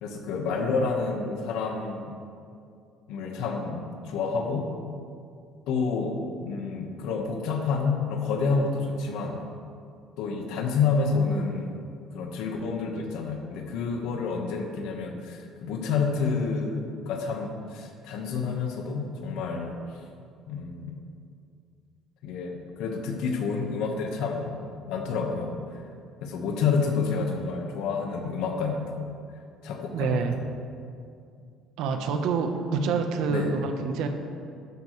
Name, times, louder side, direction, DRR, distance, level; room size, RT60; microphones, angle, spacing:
voice 1, 0.0-2.1 3.1-4.7 5.7-9.4 10.2-11.7 12.1-19.8 20.5-21.0 22.2-24.5 24.9-25.8 26.2-29.0 29.6-30.2 33.3-33.5, left 4 dB, 80° left, 2 dB, 1.5 m, -29 dB
voice 2, 29.9-30.4 31.8-34.1, right 5 dB, 75° right, 6 dB, 1.2 m, -27 dB
12.5 x 12.0 x 3.3 m, 2.4 s
cardioid pair, 150°, 0 cm